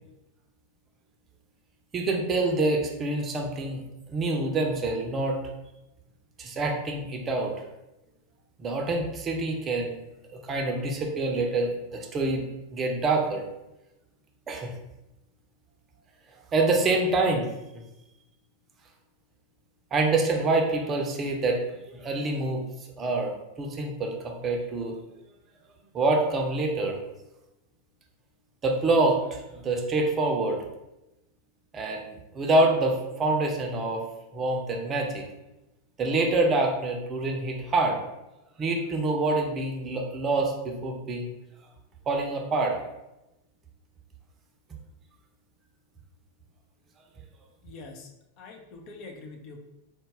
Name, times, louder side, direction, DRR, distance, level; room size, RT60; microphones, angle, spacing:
voice 1, 1.9-3.8 4.1-5.4 6.4-7.5 8.6-10.0 10.4-13.4 14.5-14.7 16.5-17.5 19.9-21.6 21.9-22.6 23.0-25.0 25.9-27.0 28.6-30.6 31.7-32.1 32.3-34.0 34.3-35.2 36.0-38.0 38.6-41.3 42.1-42.8, right 2 dB, 25° right, 2 dB, 0.6 m, -26 dB
voice 2, 47.6-48.1 48.4-49.6, left 3 dB, 40° left, 2 dB, 0.5 m, -44 dB
4.0 x 2.2 x 3.5 m, 0.95 s
figure-of-eight pair, 90°, 0 cm